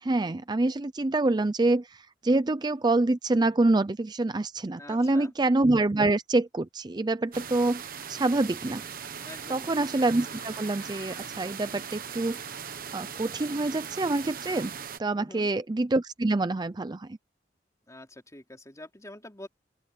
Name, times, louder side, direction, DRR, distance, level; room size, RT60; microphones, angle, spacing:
voice 1, 0.0-7.8 8.1-8.8 9.5-12.4 12.9-14.7 15.0-17.1, right 2 dB, 25° right, 0.5 m, -26 dB
voice 2, 4.8-5.3 9.2-9.7 15.1-15.5 17.9-19.5, left 1 dB, 20° left, 3.2 m, -46 dB
sound 1, 7.3-7.7 8.7-11.5, left 4 dB, 75° left, 2.0 m, -52 dB
sound 2, 7.3-15.0, right 7 dB, 55° right, 1.1 m, -39 dB
open air
head